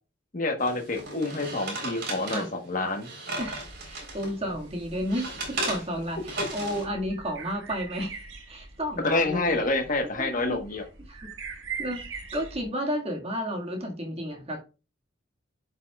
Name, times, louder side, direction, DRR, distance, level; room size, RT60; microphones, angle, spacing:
voice 1, 0.3-3.1 9.0-10.8, left 2 dB, 45° left, 1.2 m, -27 dB
sound 1, 0.6-4.3 4.8-6.9, right 2 dB, 55° right, 3.8 m, -35 dB
voice 2, 3.4-8.2 8.5-9.6 10.2-10.6 11.1-11.2 11.8-12.0 12.3-14.6, equal, 30° right, 1.9 m, -32 dB
sound 2, 3.4-12.6, right 5 dB, 80° right, 1.6 m, -43 dB
11.5 x 5.6 x 2.3 m
head